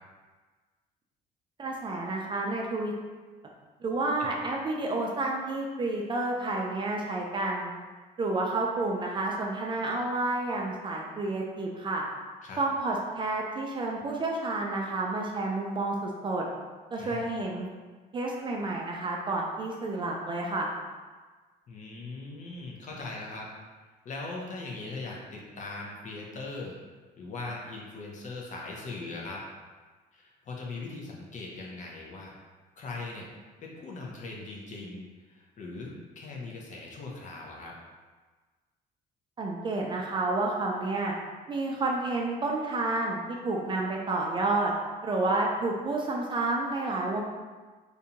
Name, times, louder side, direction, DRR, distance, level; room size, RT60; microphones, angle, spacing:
voice 1, 1.6-2.9 3.8-7.7 8.2-12.0 12.6-16.4 16.9-17.7 18.1-20.7 39.4-41.1 41.5-44.7 45.0-47.2, right 2 dB, 30° right, -1 dB, 0.4 m, -30 dB
voice 2, 17.0-17.3 21.7-23.5 24.0-26.8 27.2-29.4 30.1-32.3 32.8-33.3 33.6-37.7, left 3 dB, 45° left, -1 dB, 0.6 m, -40 dB
2.6 x 2.2 x 2.8 m, 1.4 s
cardioid pair, 110°, 17 cm